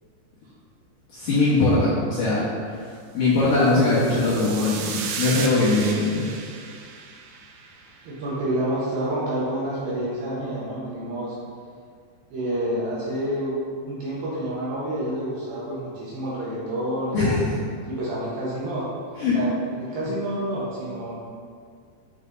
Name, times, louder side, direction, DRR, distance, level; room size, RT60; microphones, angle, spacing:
voice 1, 1.1-2.8 3.1-6.3 17.1-17.6 19.2-19.4, left 2 dB, 70° left, -10 dB, 2.1 m, -21 dB
sound 1, 3.5-8.0, right 6 dB, 90° right, 2.3 m, -35 dB
voice 2, 8.0-11.4 12.3-13.5 13.8-18.9 19.3-21.1, right 1 dB, 70° right, -8 dB, 2.3 m, -29 dB
8.1 x 5.6 x 2.6 m, 2.2 s
omnidirectional pair, 5.2 m